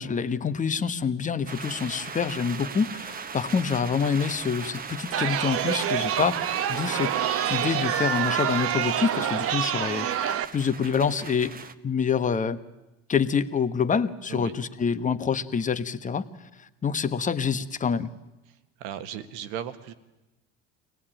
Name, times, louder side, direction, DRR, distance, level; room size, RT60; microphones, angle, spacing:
voice 1, 0.0-7.1 7.4-10.1 10.5-12.6 13.1-16.2 16.8-18.1, left 6 dB, 25° left, 11 dB, 1.2 m, -26 dB
sound 1, 1.5-11.7, right 6 dB, 30° right, 1.1 m, -39 dB
Chatter, 5.1-10.4, right 10 dB, 50° right, 1.1 m, -27 dB
voice 2, 18.8-19.9, right 10 dB, 80° right, 10 dB, 1.7 m, -36 dB
24.0 x 18.5 x 9.0 m, 1.0 s
supercardioid pair, 105°, 31 cm